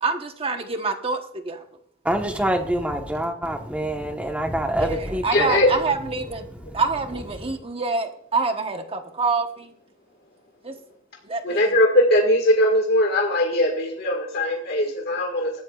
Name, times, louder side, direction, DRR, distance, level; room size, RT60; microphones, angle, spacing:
voice 1, 0.0-1.6 4.7-6.5 6.7-9.7 10.6-10.7 11.2-11.7, right 4 dB, 30° right, 1.1 m, -26 dB
voice 2, 2.0-5.5, right 1 dB, 5° right, 1.2 m, -25 dB
voice 3, 5.3-5.7 11.4-15.6, left 1 dB, 55° left, 1.8 m, -20 dB
20.0 x 12.5 x 2.4 m
head